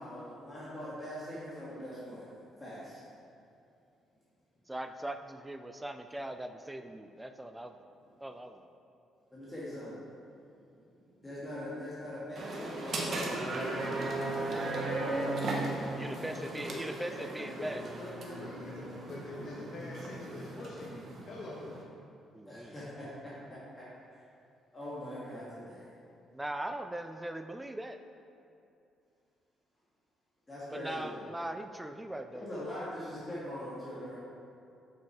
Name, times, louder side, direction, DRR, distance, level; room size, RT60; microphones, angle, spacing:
voice 1, 0.0-2.3 2.6-3.0 9.3-10.0 11.2-13.6 16.0-16.4 22.5-23.8 24.7-25.9 30.5-31.2 32.3-34.2, left 1 dB, 15° left, -9 dB, 1.6 m, -42 dB
voice 2, 4.7-7.8 8.2-8.6 14.5-15.1 16.0-17.9 22.3-22.7 26.3-28.0 30.7-32.5, right 1 dB, 10° right, 8 dB, 0.3 m, -40 dB
sound 1, 12.4-21.8, right 2 dB, 45° right, 1.0 m, -36 dB
voice 3, 16.4-17.7 18.0-21.7, left 1 dB, 55° left, -4 dB, 1.1 m, -44 dB
6.9 x 6.0 x 4.5 m, 2.7 s
cardioid pair, 140°, 0 cm